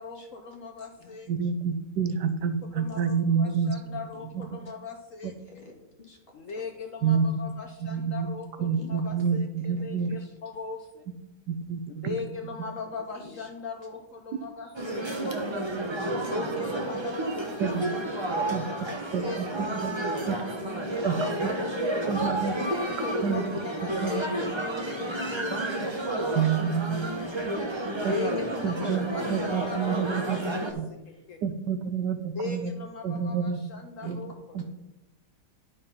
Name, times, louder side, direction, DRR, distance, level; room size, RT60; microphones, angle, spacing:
voice 1, 0.0-1.3 2.7-5.6 6.3-11.0 12.0-15.4 16.2-19.7 21.2-22.7 23.0-25.9 27.9-30.0 30.6-30.7 31.3-31.4 32.3-34.6, left 4 dB, 60° left, 5 dB, 1.0 m, -39 dB
voice 2, 1.3-4.0 4.3-4.5 7.0-7.2 7.8-8.3 8.6-10.2 11.5-12.2 17.6-17.8 18.5-18.6 19.1-19.4 19.8-19.9 20.3-20.4 21.0-21.1 21.4-21.5 22.1-22.6 23.2-23.4 24.0-24.2 26.3-27.1 28.0-28.1 28.6-30.8 31.4-32.7 33.0-33.6 34.0-34.2 34.5-34.6, right 6 dB, 80° right, 9 dB, 1.4 m, -28 dB
voice 3, 5.2-5.7 6.0-6.2 8.7-8.9 10.0-10.3 13.1-13.5 17.6-18.4 20.6-21.3 21.7-21.8 24.0-24.5 25.8-26.0 26.4-26.6 28.2-30.4 30.7-30.8 31.1-31.2 34.0-34.2 34.6-34.7, left 3 dB, 35° left, 0 dB, 2.1 m, -45 dB
sound 1, 14.7-30.7, right 1 dB, 25° right, 0.7 m, -31 dB
11.0 x 5.3 x 5.6 m, 0.98 s
omnidirectional pair, 1.8 m